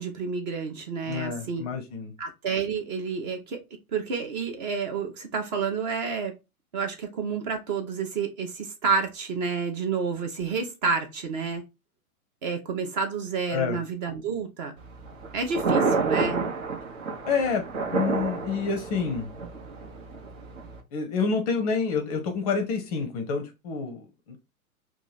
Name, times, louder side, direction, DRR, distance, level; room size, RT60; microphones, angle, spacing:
voice 1, 0.0-1.6 2.2-3.6 3.9-6.3 6.7-11.6 12.4-14.7 15.3-16.4, right 5 dB, 30° right, 0.6 m, -29 dB
voice 2, 1.1-2.1 13.5-13.8 17.2-19.3 20.9-24.4, left 5 dB, 25° left, 0.6 m, -28 dB
Thunder, 14.8-20.8, right 4 dB, 60° right, 1.0 m, -29 dB
2.9 x 2.4 x 3.9 m
figure-of-eight pair, 105°, 44 cm